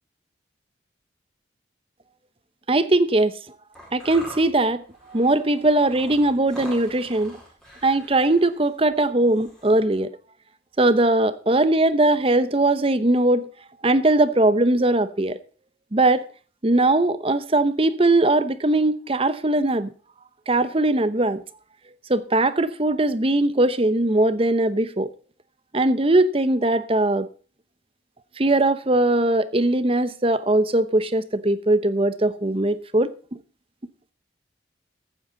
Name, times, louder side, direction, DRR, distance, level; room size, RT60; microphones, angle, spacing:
voice 1, 2.7-3.4 3.9-4.8 5.1-7.4 7.8-10.1 10.8-13.5 13.8-15.4 15.9-16.2 16.6-19.9 20.5-21.4 22.1-25.1 25.7-27.3 28.4-33.1, right 2 dB, 30° right, 0.9 m, -20 dB
sound 1, 3.7-9.7, equal, 5° left, 4.8 m, -43 dB
15.0 x 9.3 x 3.9 m
head